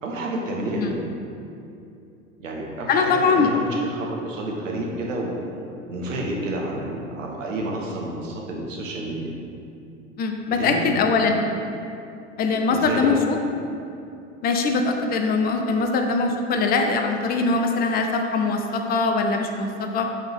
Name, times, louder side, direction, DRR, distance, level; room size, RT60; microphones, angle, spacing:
voice 1, 0.0-1.0 2.4-5.3 5.9-9.3 10.6-11.0 12.7-13.2, right 1 dB, 75° right, -2 dB, 1.0 m, -29 dB
voice 2, 2.9-3.5 10.2-11.4 12.4-13.4 14.4-20.1, left 4 dB, 25° left, 4 dB, 0.5 m, -22 dB
8.2 x 3.5 x 3.5 m, 2.6 s
figure-of-eight pair, 80°, 39 cm